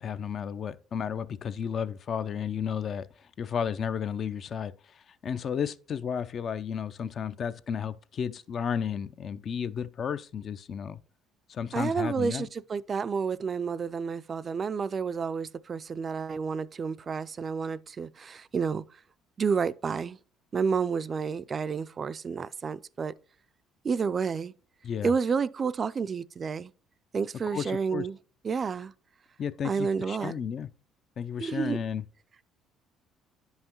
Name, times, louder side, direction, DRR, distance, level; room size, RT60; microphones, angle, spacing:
voice 1, 0.0-11.0 11.5-12.5 24.8-25.1 27.5-28.1 29.4-30.7 31.2-32.0, left 7 dB, 50° left, 0.4 m, -33 dB
voice 2, 11.7-18.8 19.4-20.2 20.5-23.1 23.8-24.5 25.0-26.7 27.1-28.2 28.4-28.9 29.6-30.3 31.4-31.8, right 5 dB, 35° right, 0.3 m, -30 dB
9.6 x 5.5 x 2.9 m
supercardioid pair, 90°, 0 cm